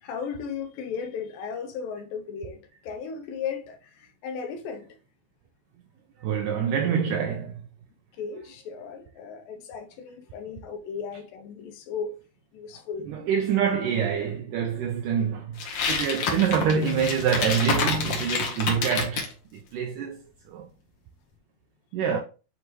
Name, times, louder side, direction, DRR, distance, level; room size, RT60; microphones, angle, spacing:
voice 1, 0.0-4.9 8.2-12.2 12.5-13.1 22.1-22.2, left 6 dB, 80° left, 2.5 m, -36 dB
voice 2, 6.2-7.6 13.0-20.2 20.5-20.7 21.9-22.2, right 7 dB, 75° right, 2.1 m, -26 dB
sound 1, 15.6-19.3, left 5 dB, 60° left, 1.7 m, -28 dB
8.1 x 3.8 x 3.1 m
omnidirectional pair, 4.1 m